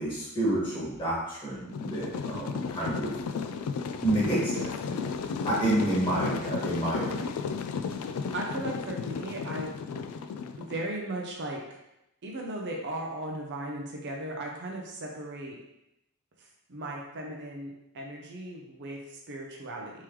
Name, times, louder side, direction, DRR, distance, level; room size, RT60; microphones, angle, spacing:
voice 1, 0.0-3.1 4.0-5.0 5.4-7.3, right 1 dB, 25° left, -8 dB, 1.5 m, -29 dB
sound 1, 1.7-10.8, left 5 dB, 80° left, 0.3 m, -34 dB
voice 2, 8.3-9.7 10.6-11.8 12.2-15.6 16.4-20.0, right 1 dB, 55° right, 0 dB, 0.5 m, -37 dB
3.6 x 3.1 x 3.0 m, 0.87 s
head